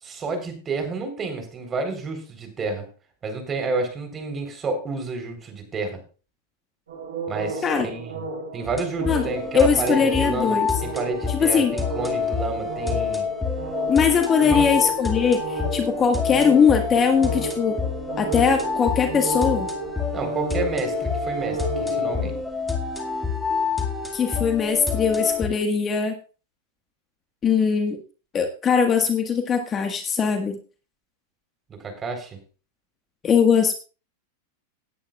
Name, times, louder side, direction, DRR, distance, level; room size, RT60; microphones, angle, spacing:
voice 1, 0.0-2.9 3.2-6.0 7.3-8.3 8.5-13.3 14.4-14.7 20.1-22.3 31.7-32.4, right 3 dB, 25° right, 6 dB, 3.9 m, -30 dB
sound 1, 6.9-22.4, right 3 dB, 85° right, 7.8 m, -33 dB
sound 2, 8.6-25.5, left 5 dB, 10° left, 2.0 m, -28 dB
voice 2, 9.5-10.7 11.4-11.7 13.9-17.8 18.2-19.7 24.1-26.1 27.4-28.0 28.3-30.6 33.2-33.7, left 6 dB, 25° left, 5 dB, 1.5 m, -20 dB
18.0 x 9.7 x 2.4 m, 0.35 s
hypercardioid pair, 110°, 0 cm